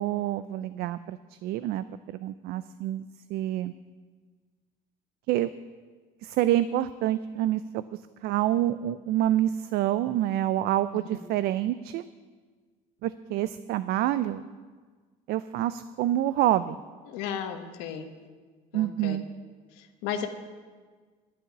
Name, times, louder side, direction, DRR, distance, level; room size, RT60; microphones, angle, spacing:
voice 1, 0.0-3.7 5.3-5.5 6.2-7.8 8.2-12.0 13.0-14.4 15.3-16.8 18.7-19.2, right 13 dB, 65° right, 13 dB, 0.4 m, -27 dB
voice 2, 17.1-18.1 18.7-19.2 19.8-20.3, left 8 dB, 90° left, 6 dB, 1.2 m, -34 dB
11.5 x 7.0 x 9.4 m, 1.5 s
cardioid pair, 115°, 17 cm